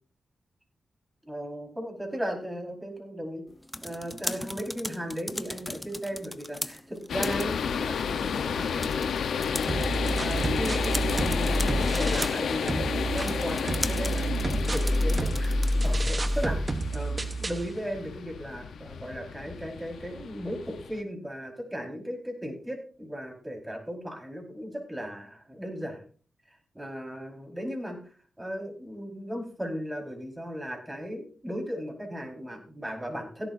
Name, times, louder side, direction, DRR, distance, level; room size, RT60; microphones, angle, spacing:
voice 1, 1.2-3.4 3.8-9.0 9.6-9.9 10.2-15.6 15.8-26.0 26.7-28.0 28.4-33.5, equal, 15° right, 2 dB, 4.7 m, -36 dB
sound 1, 3.5-16.0, left 1 dB, 10° left, 1.0 m, -39 dB
sound 2, 7.1-21.0, left 6 dB, 80° left, 1.0 m, -32 dB
sound 3, 9.7-12.4 12.7-17.7, right 1 dB, 35° right, 1.1 m, -28 dB
16.5 x 11.5 x 2.7 m, 0.40 s
cardioid pair, 55°, 0 cm